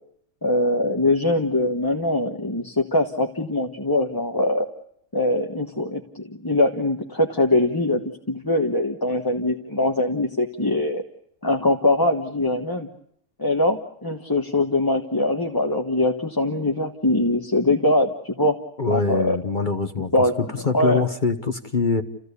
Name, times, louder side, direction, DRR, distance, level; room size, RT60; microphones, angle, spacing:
voice 1, 0.4-4.7 5.1-8.0 8.3-11.0 11.4-12.9 13.4-18.6 18.9-19.4 20.1-20.4 20.7-21.1, left 1 dB, 15° left, 2 dB, 1.3 m, -22 dB
voice 2, 18.8-20.1 20.4-22.0, left 4 dB, 35° left, 8 dB, 1.2 m, -24 dB
30.0 x 16.0 x 8.4 m, 0.73 s
omnidirectional pair, 1.5 m